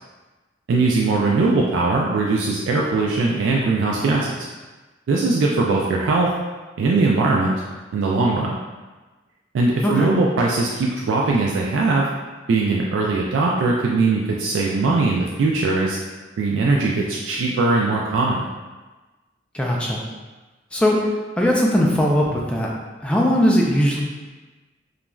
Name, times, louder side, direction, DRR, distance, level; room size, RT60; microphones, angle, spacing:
voice 1, 0.7-4.5 5.1-6.3 6.8-7.5 7.9-8.6 9.5-12.1 12.5-16.0 16.4-18.4, right 3 dB, 80° right, -2 dB, 0.3 m, -20 dB
voice 2, 19.5-20.0 20.7-21.0 21.4-22.7 23.0-24.0, equal, 5° left, -3 dB, 0.3 m, -19 dB
3.0 x 2.4 x 2.2 m, 1.2 s
head